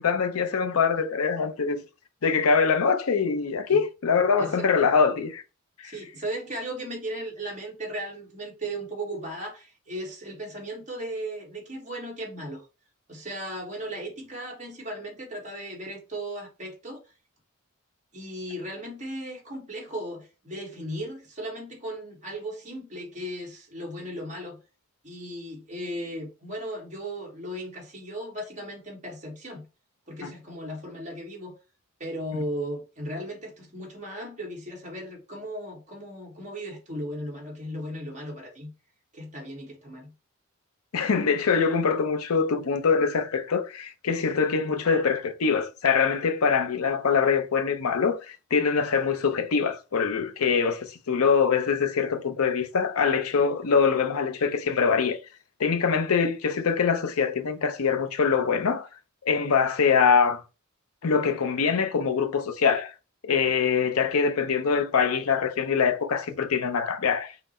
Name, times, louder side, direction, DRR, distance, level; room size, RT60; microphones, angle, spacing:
voice 1, 0.0-1.8 2.2-5.4 5.8-5.9 30.2-30.3 40.9-55.2 55.6-58.9 59.2-60.4 61.0-62.9 63.2-67.3, left 5 dB, 85° left, 0.6 m, -24 dB
voice 2, 4.4-4.9 5.8-12.6 13.1-17.0 18.1-24.6 25.0-29.6 30.1-31.5 32.0-38.7 39.1-40.1, right 1 dB, 35° right, 1.5 m, -36 dB
5.7 x 2.1 x 4.2 m
head